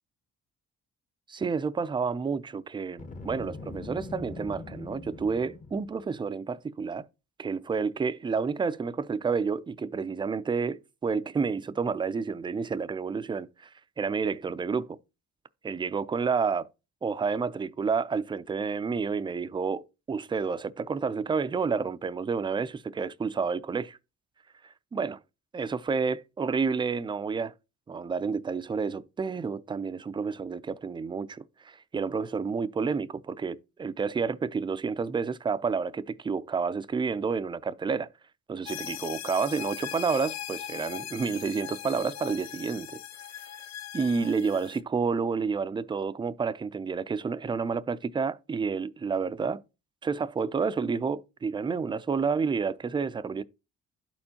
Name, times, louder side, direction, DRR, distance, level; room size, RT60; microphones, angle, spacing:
voice 1, 1.3-7.1 7.4-13.7 14.0-15.0 15.6-16.7 17.0-24.0 24.9-25.2 25.5-27.5 27.9-38.1 38.5-42.9 43.4-43.5 43.9-49.6 50.0-53.4, right 5 dB, 15° right, 0.3 m, -30 dB
Boom, 3.0-6.0, left 3 dB, 25° left, 0.7 m, -42 dB
sound 1, 38.7-44.8, left 11 dB, 65° left, 0.4 m, -39 dB
12.0 x 4.4 x 2.8 m
cardioid pair, 90°, 30 cm